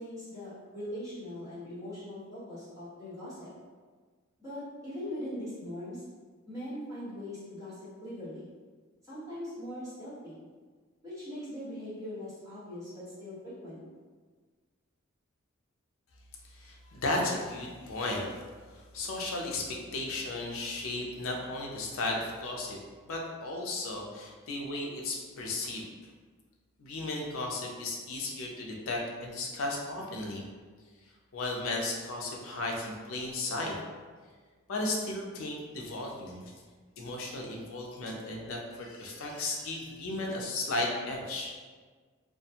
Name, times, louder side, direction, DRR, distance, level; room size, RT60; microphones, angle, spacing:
voice 1, 0.0-3.5 4.4-6.0 6.5-8.5 9.0-10.4 11.0-13.8, left 1 dB, 15° right, -13 dB, 1.3 m, -41 dB
voice 2, 16.5-18.2 18.7-22.8 23.0-25.8 26.8-30.4 31.3-33.8 34.7-36.5 37.0-41.6, left 2 dB, 80° left, 0 dB, 0.5 m, -35 dB
2.4 x 2.2 x 2.8 m, 1.5 s
head